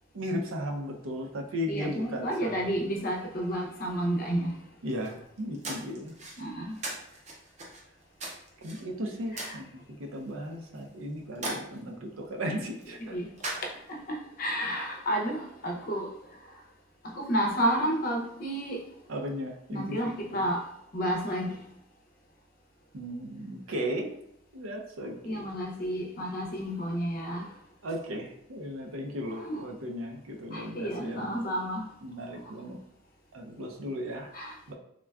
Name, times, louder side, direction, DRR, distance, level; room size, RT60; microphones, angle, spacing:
voice 1, 0.1-2.7 4.8-6.2 8.6-13.2 19.1-20.4 22.9-24.1 24.5-25.5 27.8-31.5 32.0-32.8 33.3-34.3 34.7-34.8, equal, 80° right, 1 dB, 0.5 m, -36 dB
voice 2, 1.7-4.6 6.4-6.8 9.3-9.6 13.0-13.3 13.6-16.6 17.0-18.9 19.7-20.6 20.9-21.6 25.2-27.6 29.3-29.6 30.5-31.9 32.4-32.5 34.3-34.6, equal, 45° left, 0 dB, 0.5 m, -31 dB
sound 1, 4.9-14.2, right 2 dB, 35° right, 0.5 m, -42 dB
3.6 x 2.2 x 2.3 m, 0.73 s
head